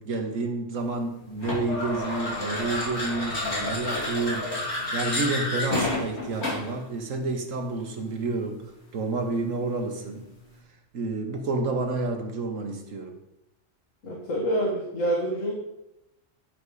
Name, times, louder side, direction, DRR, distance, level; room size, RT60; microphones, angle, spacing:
voice 1, 0.0-8.6 8.9-10.3 10.9-13.1, right 3 dB, 80° right, 4 dB, 1.7 m, -30 dB
sound 1, 1.4-6.8, left 2 dB, 55° left, 3.1 m, -30 dB
voice 2, 14.0-15.5, right 1 dB, 80° left, -2 dB, 1.9 m, -27 dB
11.0 x 5.5 x 4.9 m, 0.88 s
omnidirectional pair, 1.3 m